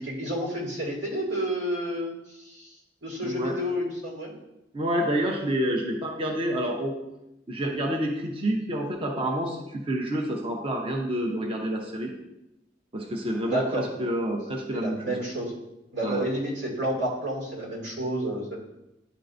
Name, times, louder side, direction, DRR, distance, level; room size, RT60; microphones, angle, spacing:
voice 1, 0.0-2.7 3.0-4.3 13.4-13.8 14.7-15.5 15.9-18.6, equal, 90° right, -2 dB, 2.4 m, -30 dB
voice 2, 3.2-3.6 4.7-7.0 7.5-12.1 12.9-15.2 16.0-16.2, right 1 dB, 30° right, 0 dB, 0.7 m, -28 dB
10.0 x 4.5 x 2.6 m, 0.91 s
head